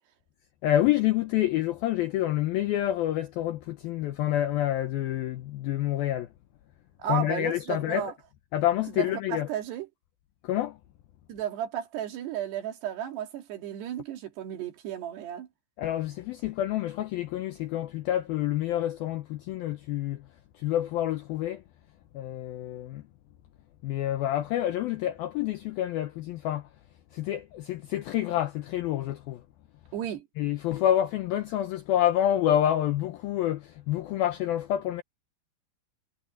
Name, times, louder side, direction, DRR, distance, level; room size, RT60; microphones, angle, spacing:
voice 1, 0.6-6.3 7.1-8.1 8.5-9.5 10.4-10.8 15.8-20.3 20.5-21.6 22.1-23.0 23.8-26.7 27.1-29.4 30.4-35.0, left 12 dB, 85° left, 2.1 m, -28 dB
voice 2, 7.0-8.1 8.9-9.9 11.3-15.5 29.9-30.3, right 10 dB, 65° right, 4.1 m, -34 dB
omnidirectional pair, 5.4 m